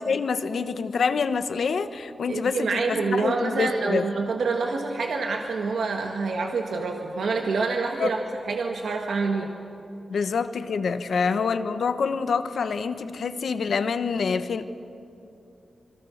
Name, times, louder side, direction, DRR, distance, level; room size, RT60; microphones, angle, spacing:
voice 1, 0.0-4.1 8.0-8.1 10.1-14.6, left 5 dB, 70° left, 10 dB, 1.2 m, -26 dB
voice 2, 2.3-8.2 8.5-9.5 11.1-11.3, right 4 dB, 80° right, 2 dB, 1.8 m, -27 dB
27.0 x 25.0 x 6.6 m, 2.8 s
wide cardioid pair, 150°, 0 cm